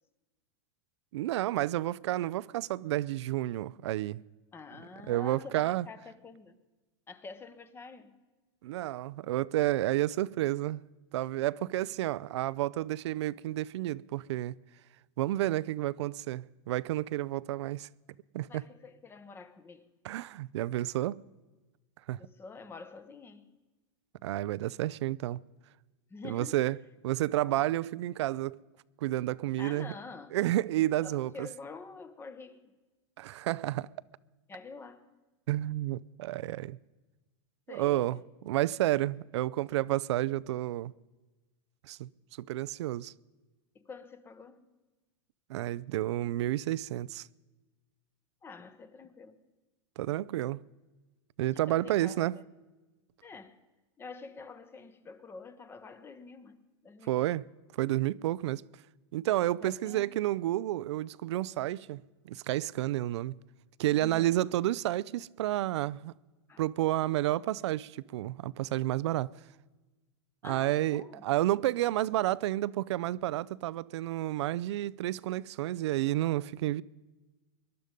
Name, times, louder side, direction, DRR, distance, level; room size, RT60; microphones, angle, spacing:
voice 1, 1.1-4.2 5.1-5.9 8.6-10.8 11.1-14.6 15.2-17.9 18.3-18.6 20.0-21.2 22.1-22.2 24.2-25.4 26.2-26.8 27.0-28.6 29.0-29.9 30.3-31.5 33.2-33.9 35.5-36.8 37.7-40.9 41.8-42.1 42.4-43.1 45.5-47.3 50.0-50.6 51.4-52.4 57.1-57.5 57.8-58.6 59.1-63.4 63.8-66.1 66.6-69.3 70.4-76.8, right 15 dB, 75° right, 0.4 m, -30 dB
voice 2, 4.5-6.6 7.1-8.2 18.5-19.9 22.2-23.6 26.1-26.7 29.6-30.4 31.0-32.8 34.5-35.1 37.7-38.2 43.7-44.8 48.4-49.4 51.4-52.5 53.2-53.6 54.0-57.3 59.6-60.2 64.0-64.4 66.5-66.6 70.4-71.2 74.4-74.5, left 4 dB, 15° left, 0.9 m, -47 dB
21.0 x 12.0 x 5.1 m
supercardioid pair, 135°, 15 cm